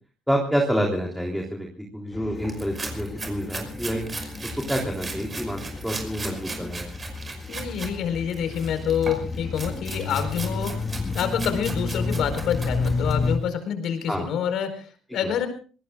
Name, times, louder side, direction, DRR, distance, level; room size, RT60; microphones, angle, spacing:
voice 1, 0.3-1.7 1.9-4.1 4.4-6.9 14.1-14.3 15.2-15.3, equal, ahead, 0 dB, 3.5 m, -28 dB
sound 1, 2.1-13.4, left 3 dB, 30° left, 1.7 m, -31 dB
sound 2, 2.4-7.9 8.3-13.3, right 3 dB, 25° right, 5.6 m, -37 dB
voice 2, 7.5-10.8 11.1-15.5, left 8 dB, 70° left, 9 dB, 4.7 m, -27 dB
26.5 x 20.5 x 2.5 m, 0.38 s
cardioid pair, 105°, 0 cm